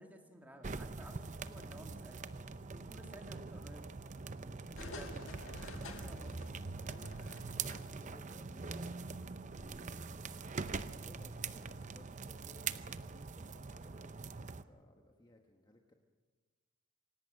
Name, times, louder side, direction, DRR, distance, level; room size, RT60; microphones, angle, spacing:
voice 1, 0.0-2.2 2.7-3.9 4.5-5.3 5.9-6.4, equal, 10° right, 3 dB, 2.3 m, -54 dB
sound 1, 0.6-14.6, right 4 dB, 35° right, 0.6 m, -43 dB
sound 2, 4.7-8.2 8.5-8.6, left 2 dB, 65° left, 2.0 m, -50 dB
voice 2, 7.5-15.9, left 1 dB, 20° left, 2 dB, 1.2 m, -62 dB
26.0 x 17.5 x 6.4 m, 1.4 s
head